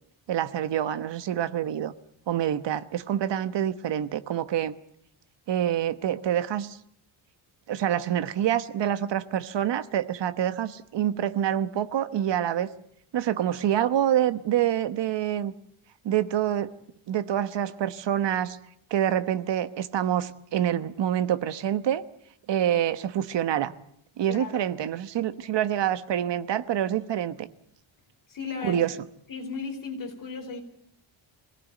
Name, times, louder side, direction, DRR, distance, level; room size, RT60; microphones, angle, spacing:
voice 1, 0.3-1.9 2.3-4.8 5.5-6.8 7.7-12.7 13.1-15.5 16.0-16.7 17.1-18.6 18.9-22.0 22.5-23.7 24.2-27.5 28.6-28.9, right 10 dB, 60° right, 13 dB, 1.2 m, -26 dB
voice 2, 24.2-24.6 28.3-29.0 29.3-30.6, left 5 dB, 45° left, 3 dB, 4.4 m, -35 dB
24.5 x 18.0 x 9.2 m, 0.71 s
wide cardioid pair, 175°, 47 cm